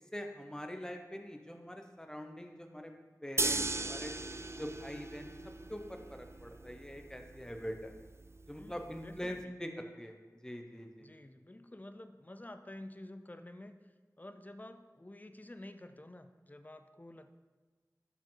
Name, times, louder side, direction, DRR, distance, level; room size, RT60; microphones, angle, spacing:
voice 1, 0.1-2.9 3.2-4.1 4.6-5.3 5.7-7.9 8.5-10.2 10.4-11.1, equal, 10° left, 4 dB, 1.0 m, -43 dB
sound 1, 3.4-9.4, right 3 dB, 40° right, 0.3 m, -39 dB
voice 2, 8.5-9.5 11.0-17.3, left 1 dB, 25° left, 9 dB, 0.5 m, -50 dB
11.5 x 5.1 x 3.9 m, 1.3 s
wide cardioid pair, 55°, 7 cm